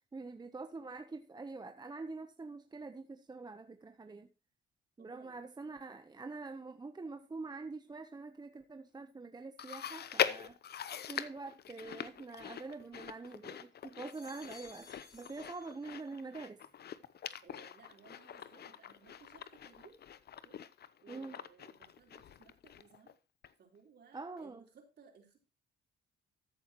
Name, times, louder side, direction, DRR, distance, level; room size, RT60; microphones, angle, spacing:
voice 1, 0.1-4.3 5.0-10.6 11.1-16.7 21.1-21.4 24.1-24.6, right 3 dB, 20° right, 8 dB, 0.9 m, -45 dB
voice 2, 5.0-5.7 14.2-14.3 17.4-20.1 20.4-20.6 21.0-23.2 23.6-25.5, right 6 dB, 55° right, 2 dB, 4.0 m, -61 dB
Chewing mastication, 9.6-23.1 23.4-23.5 24.4-24.5, left 9 dB, 55° left, 0.8 m, -42 dB
sound 1, 12.3-13.4 13.9-16.3 16.7-17.3, left 3 dB, 20° left, 5.7 m, -60 dB
14.0 x 9.1 x 3.0 m, 0.27 s
cardioid pair, 90°, 20 cm